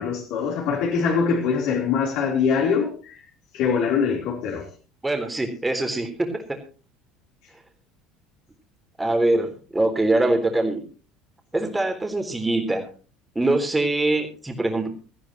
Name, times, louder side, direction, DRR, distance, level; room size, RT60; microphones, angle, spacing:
voice 1, 0.0-3.2 3.5-4.7, left 6 dB, 60° left, -1 dB, 3.6 m, -23 dB
voice 2, 5.0-6.6 9.0-10.8 11.5-12.9 13.4-14.9, right 2 dB, 10° right, 4 dB, 3.8 m, -23 dB
19.0 x 14.5 x 3.0 m, 0.37 s
figure-of-eight pair, 65°, 0 cm